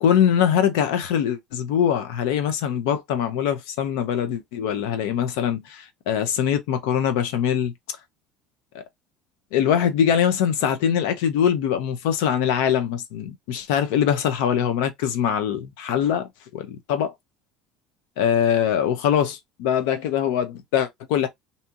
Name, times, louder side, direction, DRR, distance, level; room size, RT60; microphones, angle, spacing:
voice 1, 0.0-7.7 8.7-8.8 9.5-17.1 18.2-21.3, left 9 dB, 85° left, 0.6 m, -23 dB
2.7 x 2.7 x 2.4 m
cardioid pair, 135°, 0 cm